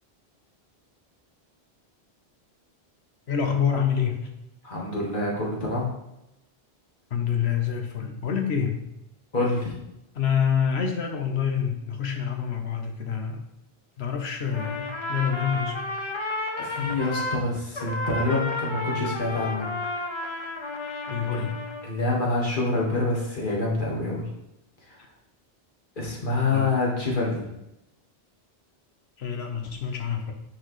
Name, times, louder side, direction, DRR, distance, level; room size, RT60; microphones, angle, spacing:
voice 1, 3.3-4.2 7.1-8.8 10.1-13.4 14.0-15.8 21.1-21.5 26.5-26.7 29.2-30.3, left 7 dB, 80° left, 4 dB, 1.3 m, -27 dB
voice 2, 4.6-5.9 9.3-9.7 16.6-19.7 21.4-21.5 21.8-24.3 24.9-25.0 26.0-27.5, left 2 dB, 50° left, -3 dB, 1.8 m, -26 dB
Trumpet, 14.5-17.4 17.7-21.9, left 2 dB, 30° left, 0.7 m, -32 dB
10.0 x 4.7 x 3.2 m, 0.88 s
omnidirectional pair, 1.1 m